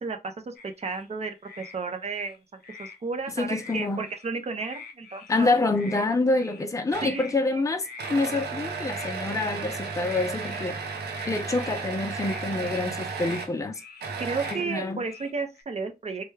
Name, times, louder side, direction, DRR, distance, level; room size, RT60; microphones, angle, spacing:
voice 1, 0.0-5.6 7.0-7.2 7.5-7.6 14.2-16.3, right 4 dB, 40° right, 0.5 m, -33 dB
sound 1, 0.6-1.0 1.4-1.8 2.1-3.0 3.5-4.3 4.6-5.3 5.7-6.1 6.3-6.6 7.0-7.4 7.8-8.5 8.8-9.7 10.0-10.7 11.1-11.8 12.1-12.9 13.1-13.5 13.7-14.1 14.3-14.7 15.0-15.6, left 5 dB, 75° left, 0.7 m, -44 dB
voice 2, 3.4-4.0 5.3-10.8 11.3-13.8 14.5-15.0, left 2 dB, 20° left, 0.5 m, -27 dB
sound 2, 6.9-7.2 8.0-13.5 14.0-14.9, right 4 dB, 90° right, 0.7 m, -34 dB
3.3 x 2.2 x 3.1 m
wide cardioid pair, 125°, 17 cm